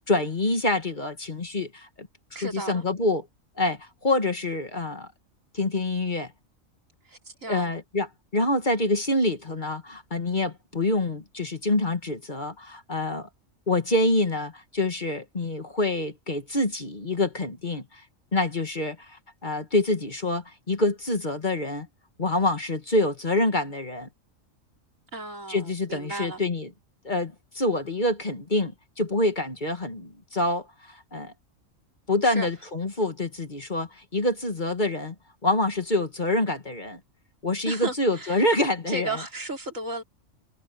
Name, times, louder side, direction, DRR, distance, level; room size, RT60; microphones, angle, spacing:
voice 1, 0.1-3.2 3.6-5.1 5.5-6.3 7.5-8.1 8.3-13.3 13.7-18.0 18.3-21.9 22.2-24.1 25.5-26.7 27.0-28.7 29.0-31.3 32.1-35.1 35.4-37.0 37.4-39.1, left 2 dB, 35° left, 1.8 m, -26 dB
voice 2, 2.4-2.8 7.0-7.7 25.1-26.4 32.2-32.5 37.7-38.5 38.9-40.0, right 2 dB, 70° right, 4.1 m, -34 dB
omnidirectional pair, 1.4 m